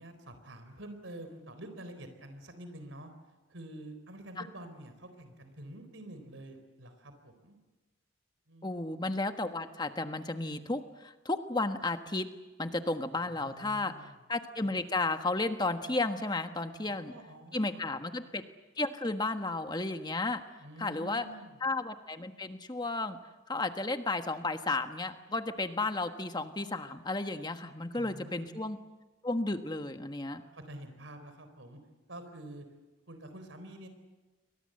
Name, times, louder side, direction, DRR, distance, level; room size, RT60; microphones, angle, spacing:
voice 1, 0.0-3.1 3.5-7.6 8.5-9.0 13.1-14.2 16.8-18.0 20.6-21.6 27.9-28.5 30.3-31.8 32.1-32.7 33.1-33.9, right 1 dB, 85° right, 8 dB, 4.0 m, -48 dB
voice 2, 8.6-12.3 12.6-13.9 14.3-17.1 17.5-18.4 18.8-20.4 20.8-21.2 21.6-23.2 23.5-28.8 29.2-30.4, left 2 dB, 20° left, 7 dB, 1.4 m, -33 dB
29.0 x 23.5 x 7.8 m, 1.2 s
head